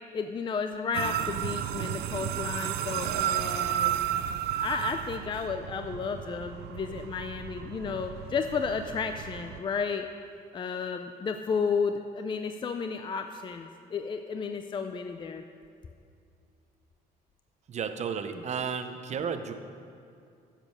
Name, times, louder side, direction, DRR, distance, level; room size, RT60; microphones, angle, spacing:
voice 1, 0.1-4.0 4.6-10.1 10.5-15.4, left 5 dB, 30° left, 7 dB, 0.5 m, -32 dB
sound 1, 0.9-9.6, right 11 dB, 75° right, 0.5 m, -33 dB
voice 2, 17.7-19.5, right 6 dB, 40° right, 8 dB, 0.8 m, -33 dB
10.0 x 7.6 x 6.5 m, 2.4 s
cardioid pair, 110°, 17 cm